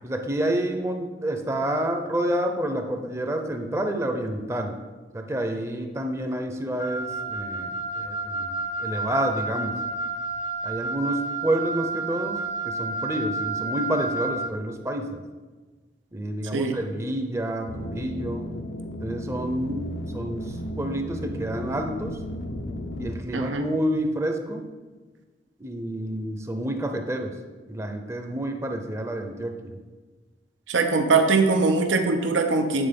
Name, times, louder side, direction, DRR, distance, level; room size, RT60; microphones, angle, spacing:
voice 1, 0.0-4.8 5.1-8.5 8.8-9.8 10.6-12.4 12.6-15.2 16.1-18.5 19.0-22.2 23.0-24.7 25.6-27.4 27.7-29.8, right 1 dB, 15° right, 5 dB, 0.6 m, -29 dB
Wind instrument woodwind instrument, 6.8-14.6, right 3 dB, 45° left, 0.4 m, -30 dB
sound 1, 17.7-23.1, equal, 75° left, 0.7 m, -34 dB
voice 2, 23.3-23.7 30.7-32.9, right 3 dB, 90° right, 6 dB, 0.7 m, -22 dB
8.9 x 4.1 x 5.3 m, 1.3 s
head